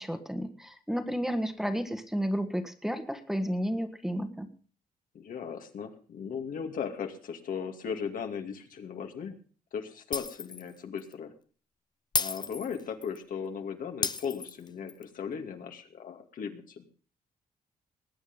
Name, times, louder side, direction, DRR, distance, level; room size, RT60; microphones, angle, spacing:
voice 1, 0.0-4.5, equal, 5° right, 8 dB, 1.6 m, -32 dB
voice 2, 5.1-9.4 9.7-11.3 12.2-16.9, left 7 dB, 70° left, 5 dB, 2.4 m, -37 dB
Shatter, 10.1-10.7 11.0-11.1 12.1-13.2 14.0-15.0, left 4 dB, 30° left, 0.9 m, -33 dB
20.5 x 8.7 x 5.4 m, 0.40 s
cardioid pair, 95°, 15 cm